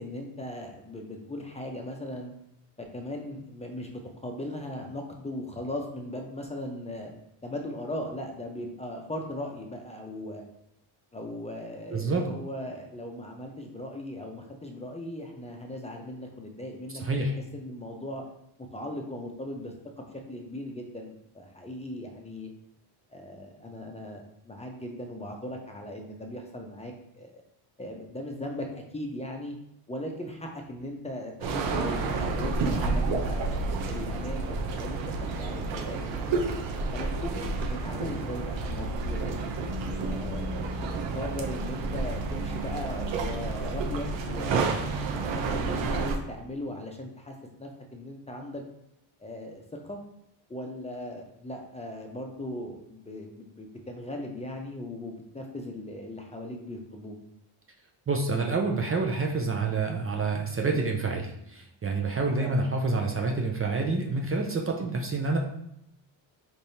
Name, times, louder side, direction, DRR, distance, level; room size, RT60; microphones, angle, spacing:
voice 1, 0.0-2.3 2.8-7.1 7.4-10.4 11.1-17.3 17.5-18.2 18.7-22.5 23.1-27.3 27.8-29.5 29.9-33.5 33.9-36.3 36.9-39.5 40.0-40.9 41.1-44.8 45.3-48.6 49.2-50.0 50.5-57.2 62.4-62.6, left 1 dB, 15° left, 1 dB, 0.7 m, -38 dB
voice 2, 11.9-12.2 17.0-17.3 58.1-65.4, right 3 dB, 30° right, 1 dB, 0.6 m, -28 dB
sound 1, 31.4-46.2, right 3 dB, 65° right, 0.8 m, -30 dB
4.4 x 3.3 x 2.8 m, 0.77 s
cardioid pair, 80°, 48 cm